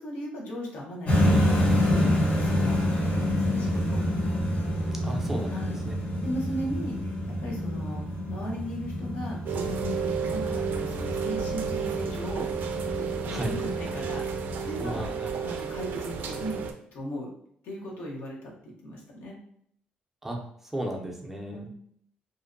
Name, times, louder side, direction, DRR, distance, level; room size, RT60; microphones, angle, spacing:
voice 1, 0.0-4.0 5.5-5.8 6.2-8.0 8.3-16.6 16.9-17.3 17.6-19.4 21.4-21.7, equal, 80° left, -2 dB, 0.8 m, -37 dB
sound 1, 1.1-15.0, left 1 dB, 45° left, 0.8 m, -28 dB
voice 2, 5.0-5.5 5.9-6.0 13.3-13.5 14.8-15.3 20.2-20.4 20.7-21.7, right 1 dB, 10° right, 0 dB, 0.5 m, -33 dB
Rain, 9.5-16.7, right 6 dB, 65° right, 0.4 m, -32 dB
2.5 x 2.1 x 2.5 m, 0.67 s
cardioid pair, 95°, 3 cm